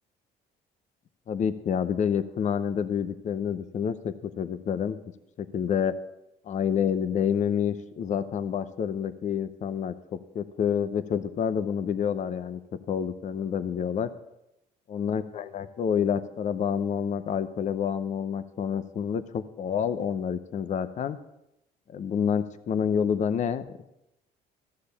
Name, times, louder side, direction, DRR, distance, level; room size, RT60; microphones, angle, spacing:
voice 1, 1.3-5.0 5.4-5.9 6.5-12.6 12.9-14.1 14.9-21.2 21.9-23.7, left 7 dB, 45° left, 12 dB, 0.7 m, -28 dB
13.5 x 6.6 x 6.9 m, 0.87 s
cardioid pair, 110°, 17 cm